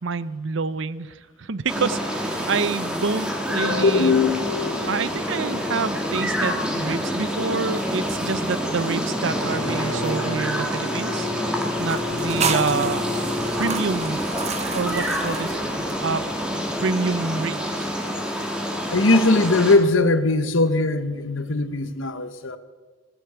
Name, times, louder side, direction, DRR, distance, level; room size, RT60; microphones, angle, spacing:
voice 1, 0.0-4.1 4.9-11.3 11.8-13.1 13.6-14.2 14.7-15.6 16.0-16.2 16.8-17.9, right 4 dB, 70° right, 17 dB, 0.6 m, -27 dB
sound 1, 1.7-19.8, equal, 5° right, 1.9 m, -27 dB
voice 2, 3.6-5.0 18.9-22.6, left 3 dB, 75° left, 12 dB, 1.1 m, -20 dB
Bowed string instrument, 9.1-13.9, left 2 dB, 15° left, 5.0 m, -32 dB
sound 2, 11.8-16.4, right 6 dB, 35° right, 1.0 m, -31 dB
17.5 x 11.5 x 7.0 m, 1.4 s
head